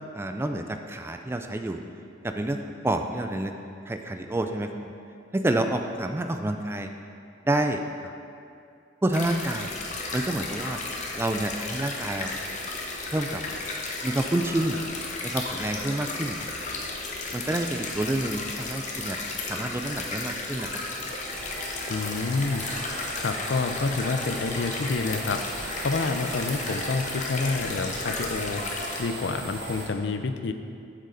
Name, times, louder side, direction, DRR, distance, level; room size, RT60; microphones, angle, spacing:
voice 1, 0.1-1.8 2.2-2.6 2.8-3.5 3.9-4.9 5.3-6.9 7.5-8.1 9.0-9.7 10.1-10.8 11.2-12.3 13.1-13.4 14.0-14.8 15.2-16.5 17.3-19.2 19.5-20.7, right 1 dB, 15° right, 6 dB, 0.3 m, -28 dB
sound 1, 9.1-29.0, left 3 dB, 40° left, 0.9 m, -34 dB
sound 2, 20.8-29.9, right 2 dB, 60° right, 1.3 m, -38 dB
voice 2, 21.9-22.6 23.2-25.4 25.8-28.6 29.0-30.5, left 3 dB, 65° left, 8 dB, 0.5 m, -28 dB
8.0 x 6.6 x 3.9 m, 2.5 s
head